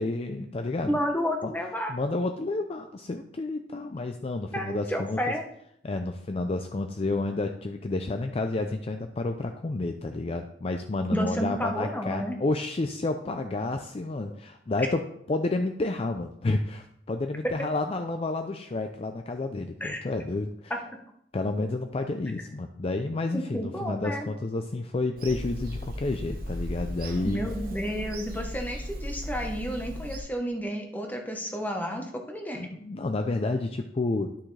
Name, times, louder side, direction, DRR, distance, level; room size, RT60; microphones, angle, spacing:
voice 1, 0.0-1.0 1.4-1.5 1.9-5.2 5.8-20.7 21.3-27.4 32.5-34.3, left 2 dB, 35° left, 6 dB, 0.4 m, -30 dB
voice 2, 0.9-1.9 4.5-5.4 11.1-12.4 19.8-20.0 23.3-24.3 27.2-32.7, equal, 10° left, 2 dB, 1.1 m, -31 dB
Bird vocalization bird call bird song / Telephone, 25.2-30.2, equal, 55° right, 1.2 m, -36 dB
11.0 x 6.1 x 3.3 m, 0.74 s
head